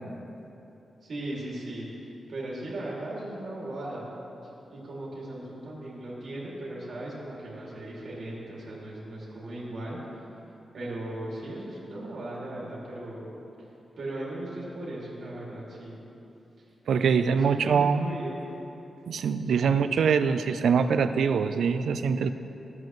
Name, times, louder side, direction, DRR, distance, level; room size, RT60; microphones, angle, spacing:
voice 1, 1.0-1.9 2.3-4.1 4.7-10.0 10.7-13.3 14.0-16.0 17.0-18.4 19.4-20.0, right 1 dB, 55° right, -7 dB, 2.3 m, -37 dB
voice 2, 16.9-18.1 19.1-22.3, right 6 dB, 80° right, 10 dB, 0.4 m, -24 dB
14.0 x 7.7 x 3.1 m, 3.0 s
wide cardioid pair, 170°, 0 cm